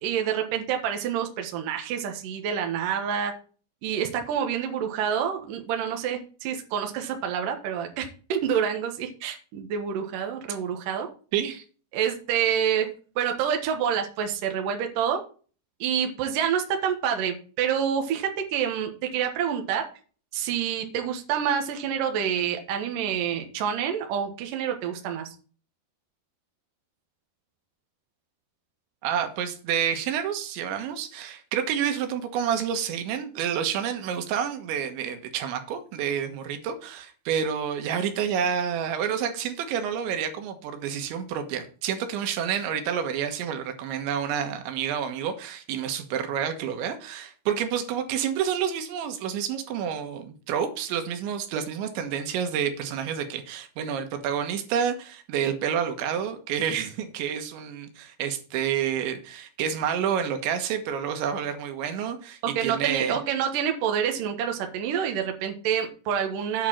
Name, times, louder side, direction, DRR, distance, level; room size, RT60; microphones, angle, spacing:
voice 1, 0.0-3.3 3.8-11.1 11.9-12.9 13.2-15.2 15.8-19.8 20.3-25.3 62.4-66.7, right 8 dB, 65° right, 4 dB, 2.5 m, -27 dB
voice 2, 11.3-11.6 29.0-63.2, right 8 dB, 90° right, 7 dB, 3.6 m, -29 dB
8.5 x 5.2 x 7.2 m, 0.38 s
omnidirectional pair, 5.1 m